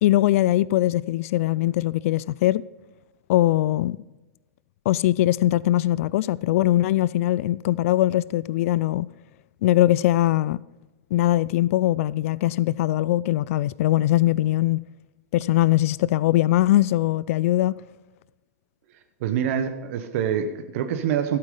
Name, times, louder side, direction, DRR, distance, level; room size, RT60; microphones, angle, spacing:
voice 1, 0.0-2.6 3.3-4.0 4.9-9.1 9.6-10.6 11.1-14.8 15.3-17.8, left 15 dB, 60° left, 0.3 m, -21 dB
voice 2, 18.9-21.4, right 8 dB, 55° right, 1.0 m, -26 dB
12.0 x 8.5 x 5.4 m
hypercardioid pair, 125°, 8 cm